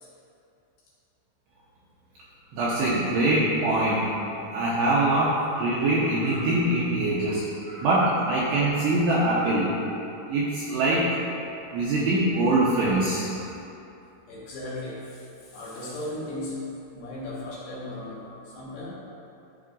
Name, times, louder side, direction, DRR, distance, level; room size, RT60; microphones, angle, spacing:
voice 1, 2.5-4.1 4.4-9.8 10.3-11.3 11.7-13.3, right 2 dB, 90° right, -8 dB, 2.4 m, -23 dB
voice 2, 14.3-18.9, left 1 dB, 70° left, -8 dB, 2.4 m, -37 dB
14.0 x 4.7 x 2.5 m, 2.7 s
omnidirectional pair, 5.9 m